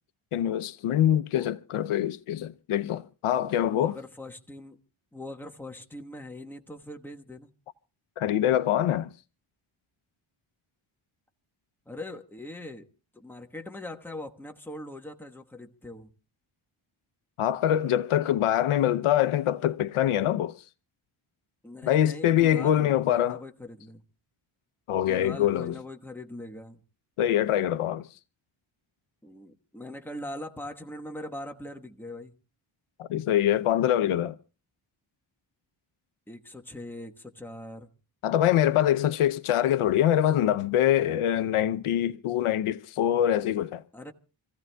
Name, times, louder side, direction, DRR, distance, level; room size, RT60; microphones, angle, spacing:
voice 1, 0.3-3.9 8.2-9.1 17.4-20.6 21.8-23.4 24.9-25.7 27.2-28.1 33.0-34.4 38.2-43.8, left 11 dB, 80° left, 0.7 m, -24 dB
voice 2, 3.7-4.8 5.1-7.5 11.9-12.9 13.1-16.1 21.6-24.0 25.1-26.8 29.2-32.3 36.3-37.9 43.9-44.1, left 1 dB, 5° left, 1.1 m, -41 dB
28.0 x 15.5 x 2.2 m
wide cardioid pair, 110°, 49 cm